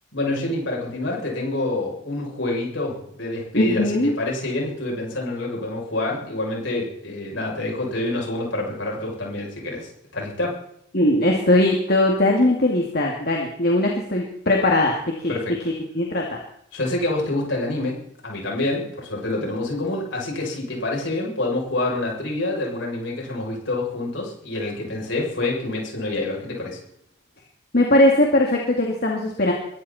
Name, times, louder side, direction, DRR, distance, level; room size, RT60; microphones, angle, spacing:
voice 1, 0.1-10.6 15.3-15.5 16.7-18.0 18.2-26.8, left 2 dB, 70° left, -2 dB, 7.7 m, -27 dB
voice 2, 3.5-4.1 10.9-15.3 15.9-16.4 27.7-29.5, left 1 dB, 50° left, 0 dB, 2.6 m, -19 dB
23.0 x 14.5 x 4.4 m, 0.73 s
head